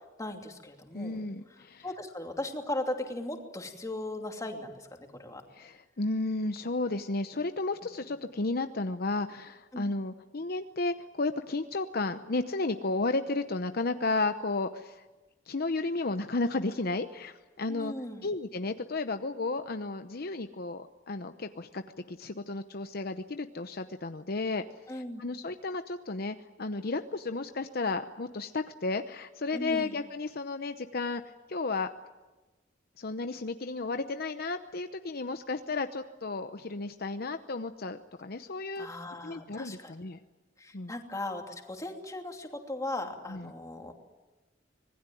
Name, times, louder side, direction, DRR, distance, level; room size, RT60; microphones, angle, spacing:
voice 1, 0.0-1.2 1.8-5.4 9.7-9.9 17.7-18.3 24.9-25.2 29.5-29.9 38.8-39.9 40.6-43.9, left 1 dB, 20° left, 3 dB, 2.8 m, -38 dB
voice 2, 0.9-1.9 5.5-15.0 15.5-17.9 18.2-21.8 22.1-24.6 24.9-31.2 31.5-31.9 33.0-38.9 39.2-40.2 40.7-40.9 43.3-43.5, left 3 dB, 55° left, 8 dB, 0.8 m, -33 dB
26.0 x 20.0 x 9.3 m, 1.2 s
head